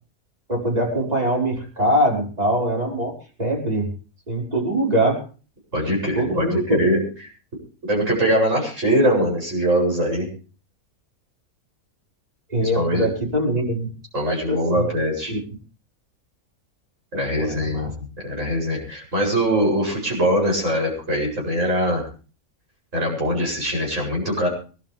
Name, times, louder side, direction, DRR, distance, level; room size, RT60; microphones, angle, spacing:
voice 1, 0.5-3.9 4.3-5.2 6.1-6.8 12.5-13.9 14.3-14.9 15.3-15.4 17.4-17.9, right 1 dB, 25° right, -2 dB, 5.8 m, -23 dB
voice 2, 5.7-7.0 7.9-10.3 12.6-13.1 14.1-15.3 17.1-17.9 18.2-22.1 22.9-24.5, equal, 60° right, -1 dB, 8.4 m, -22 dB
25.0 x 12.5 x 3.5 m, 0.37 s
omnidirectional pair, 1.5 m